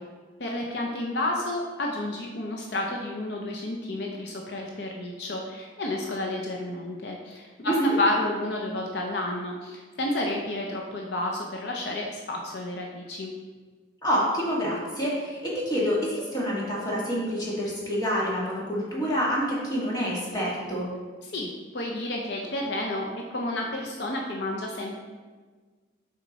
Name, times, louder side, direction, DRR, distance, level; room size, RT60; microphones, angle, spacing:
voice 1, 0.4-13.3 21.3-24.9, left 1 dB, 65° left, 0 dB, 0.7 m, -31 dB
voice 2, 14.0-20.9, equal, 20° left, -6 dB, 1.6 m, -27 dB
6.2 x 4.4 x 4.0 m, 1.4 s
head